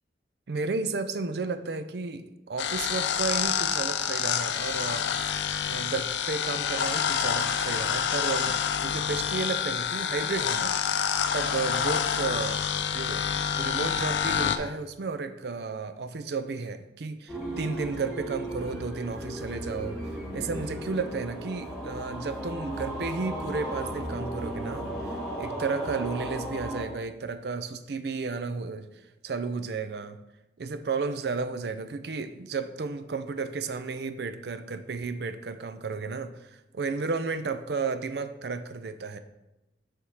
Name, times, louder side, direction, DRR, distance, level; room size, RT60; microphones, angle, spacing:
voice 1, 0.5-5.1 5.7-8.6 8.8-10.8 11.3-12.6 12.9-24.9 25.4-28.9 29.2-30.2 30.6-39.2, right 4 dB, 70° right, 11 dB, 0.5 m, -33 dB
sound 1, 2.6-14.6, left 8 dB, 85° left, 0.5 m, -28 dB
sound 2, 17.3-26.8, right 1 dB, ahead, 2.7 m, -35 dB
7.1 x 3.6 x 6.3 m, 0.94 s
head